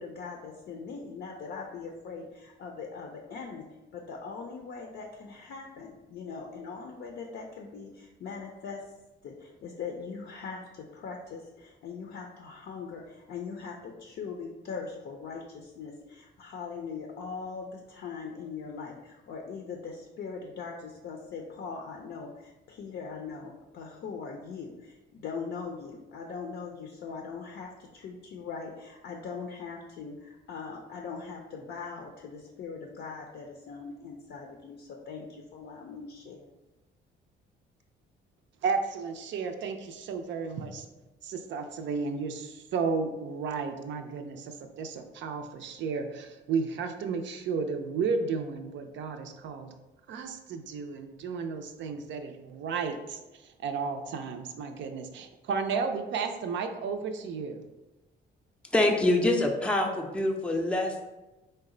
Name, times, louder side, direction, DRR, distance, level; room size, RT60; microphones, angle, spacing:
voice 1, 0.0-3.7 3.9-8.8 9.2-36.5, left 5 dB, 60° left, 1 dB, 0.5 m, -41 dB
voice 2, 38.6-40.8 41.2-49.7 50.1-53.2 53.6-57.6, right 5 dB, 70° right, 6 dB, 0.5 m, -33 dB
voice 3, 58.7-61.0, left 1 dB, 5° left, 2 dB, 0.5 m, -25 dB
3.9 x 2.2 x 3.7 m, 1.1 s
cardioid pair, 90°, 20 cm